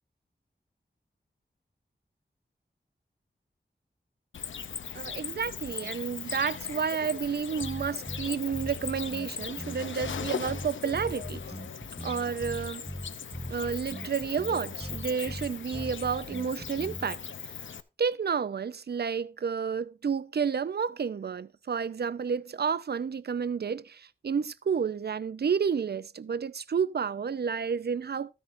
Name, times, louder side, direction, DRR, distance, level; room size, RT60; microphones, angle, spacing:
Cricket, 4.3-17.8, left 7 dB, 90° left, 0.5 m, -39 dB
voice 1, 4.9-11.4 12.0-12.9 13.5-17.2 18.0-28.3, right 6 dB, 60° right, 0.5 m, -30 dB
sound 1, 7.6-17.2, equal, 5° right, 0.7 m, -40 dB
13.0 x 9.9 x 2.6 m
cardioid pair, 50°, 19 cm